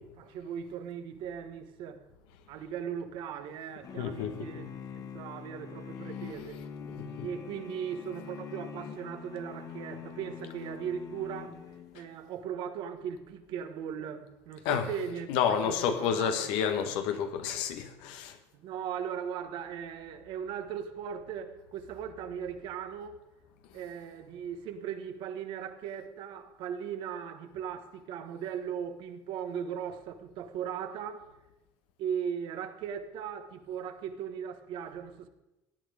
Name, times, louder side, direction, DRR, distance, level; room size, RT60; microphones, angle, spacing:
voice 1, 0.2-2.0 2.5-6.6 7.2-11.5 11.9-16.5 18.5-23.2 23.7-31.3 32.0-35.3, right 8 dB, 65° right, 1.4 m, -38 dB
sound 1, 3.8-12.2, left 7 dB, 45° left, 1.5 m, -44 dB
voice 2, 3.9-4.7 6.8-7.3 14.6-14.9 15.3-18.4, left 8 dB, 75° left, 1.5 m, -30 dB
17.0 x 9.2 x 4.9 m
supercardioid pair, 90°, 9 cm